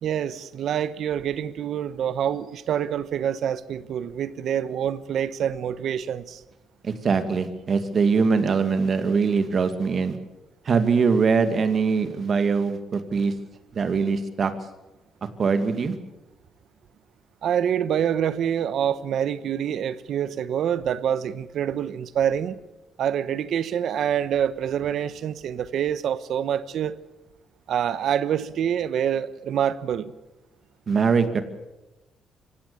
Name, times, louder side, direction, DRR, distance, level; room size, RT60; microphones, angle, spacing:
voice 1, 0.0-6.4 17.4-22.6 23.0-27.0 27.7-30.1, right 9 dB, 70° right, 15 dB, 1.0 m, -26 dB
voice 2, 6.8-10.2 10.7-13.3 13.7-14.5 15.4-16.0 30.9-31.4, right 5 dB, 50° right, 9 dB, 2.2 m, -22 dB
24.5 x 16.5 x 8.6 m, 1.0 s
cardioid pair, 90°, 0 cm